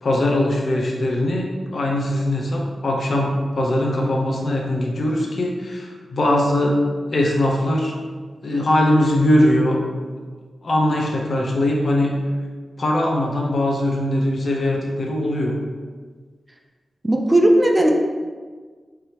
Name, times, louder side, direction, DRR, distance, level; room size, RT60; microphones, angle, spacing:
voice 1, 0.0-1.5 1.7-6.8 7.1-8.0 8.4-9.8 10.6-12.2 12.8-15.5, left 1 dB, 55° left, -1 dB, 0.7 m, -20 dB
voice 2, 17.0-17.9, right 1 dB, 20° right, 1 dB, 0.4 m, -16 dB
4.6 x 2.9 x 3.3 m, 1.5 s
wide cardioid pair, 120°, 0 cm